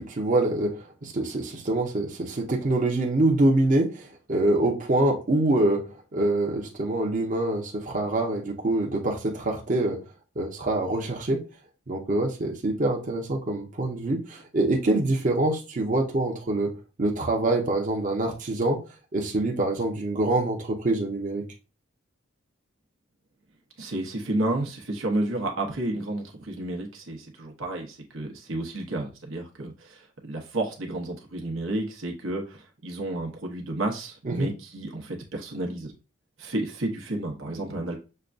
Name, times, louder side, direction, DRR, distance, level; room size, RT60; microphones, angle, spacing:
voice 1, 0.0-4.0 4.3-5.8 6.1-10.0 10.4-11.4 11.9-16.7 17.0-18.8 19.1-21.4 34.3-34.5, right 2 dB, 40° right, 0.8 m, -25 dB
voice 2, 23.8-35.9 36.4-38.0, right 1 dB, 85° right, 1.0 m, -31 dB
6.5 x 2.3 x 2.5 m
head